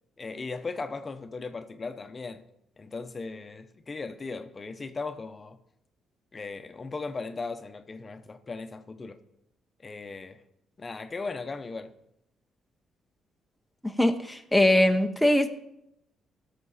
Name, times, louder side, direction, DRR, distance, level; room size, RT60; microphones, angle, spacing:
voice 1, 0.2-2.4 2.8-5.6 6.3-9.2 9.8-10.4 10.8-11.9, left 4 dB, 30° left, 0.8 m, -37 dB
voice 2, 13.8-15.5, left 1 dB, ahead, 0.8 m, -22 dB
16.5 x 6.7 x 4.2 m
cardioid pair, 90°, 0 cm